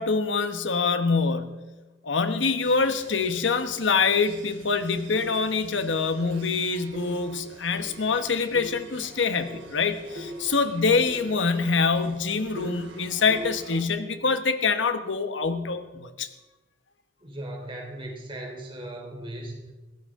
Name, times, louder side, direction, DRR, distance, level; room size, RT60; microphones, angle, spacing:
voice 1, 0.0-1.6 2.0-16.3, left 4 dB, 80° left, 9 dB, 1.2 m, -25 dB
sound 1, 2.6-13.9, right 1 dB, 80° right, 3.3 m, -43 dB
voice 2, 17.2-19.7, right 1 dB, 30° right, 1 dB, 3.4 m, -37 dB
21.0 x 16.5 x 3.7 m, 1.1 s
head